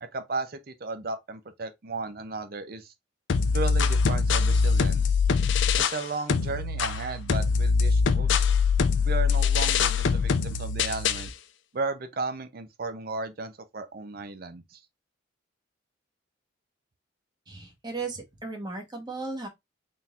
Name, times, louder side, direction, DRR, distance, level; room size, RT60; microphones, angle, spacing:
voice 1, 0.0-2.9 3.5-5.1 5.8-8.4 9.0-11.3 11.7-14.8, right 3 dB, 50° right, 0.5 m, -35 dB
sound 1, 3.3-6.0 6.3-11.3, left 5 dB, 70° left, 0.4 m, -23 dB
voice 2, 17.5-19.5, right 3 dB, 20° right, 1.0 m, -36 dB
4.2 x 3.7 x 2.4 m
head